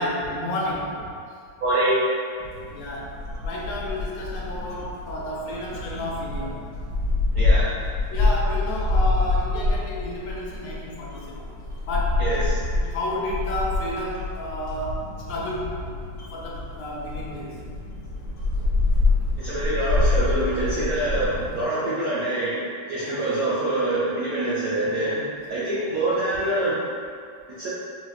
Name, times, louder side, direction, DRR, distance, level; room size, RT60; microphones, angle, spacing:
voice 1, 0.0-1.4 2.7-3.2 3.4-6.7 8.1-11.5 11.9-12.2 12.7-15.7 16.3-17.6 23.0-23.3 24.8-25.3, left 1 dB, 75° left, -4 dB, 1.2 m, -31 dB
voice 2, 1.6-2.0 7.3-7.7 12.2-12.6 19.4-22.6 22.9-25.1 25.5-26.8 27.6-27.7, right 1 dB, 75° right, -9 dB, 0.8 m, -25 dB
sound 1, 2.4-21.6, left 2 dB, 60° left, 0.8 m, -26 dB
4.0 x 2.1 x 2.4 m, 2.3 s
omnidirectional pair, 2.1 m